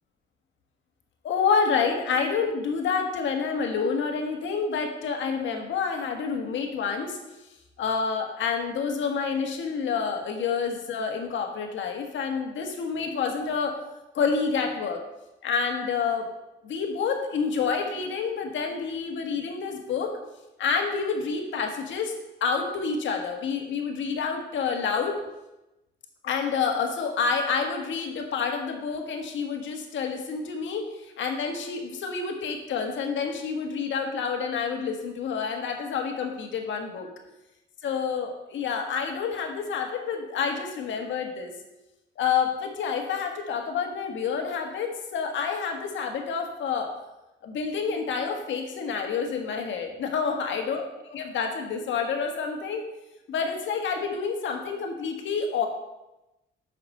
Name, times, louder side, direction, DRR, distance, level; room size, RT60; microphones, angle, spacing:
voice 1, 1.2-7.2 7.8-13.7 14.1-15.0 15.4-16.2 16.6-20.1 20.6-22.1 22.4-25.1 26.2-37.1 37.8-41.5 42.2-46.9 47.4-50.8 51.1-52.8 53.3-55.7, left 5 dB, 70° left, 3 dB, 1.5 m, -28 dB
6.0 x 6.0 x 6.6 m, 0.97 s
cardioid pair, 90°, 20 cm